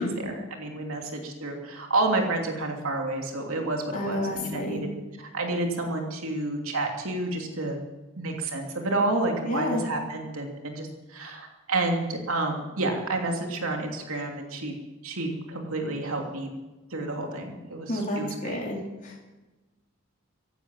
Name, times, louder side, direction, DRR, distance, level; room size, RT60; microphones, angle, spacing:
voice 1, 0.0-4.9 5.2-7.8 8.2-14.7 15.0-16.5 16.9-18.6, right 2 dB, 80° right, 2 dB, 2.9 m, -30 dB
voice 2, 3.9-4.8 9.4-9.8 17.9-19.2, left 1 dB, 40° left, -2 dB, 3.3 m, -30 dB
15.0 x 11.5 x 7.4 m, 1.1 s
head